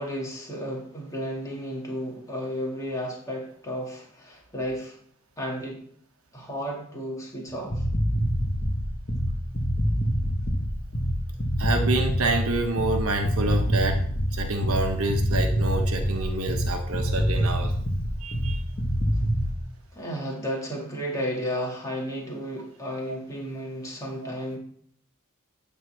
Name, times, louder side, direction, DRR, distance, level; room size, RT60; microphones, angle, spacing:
voice 1, 0.0-5.0 5.4-5.8 6.3-7.9 19.9-24.6, equal, 15° left, -2 dB, 2.3 m, -33 dB
sound 1, 7.5-19.6, equal, 40° left, 1.3 m, -25 dB
voice 2, 11.6-14.0 14.3-17.7 18.2-18.6 23.1-23.2, right 2 dB, 70° right, 5 dB, 1.2 m, -27 dB
9.9 x 4.0 x 7.4 m, 0.63 s
head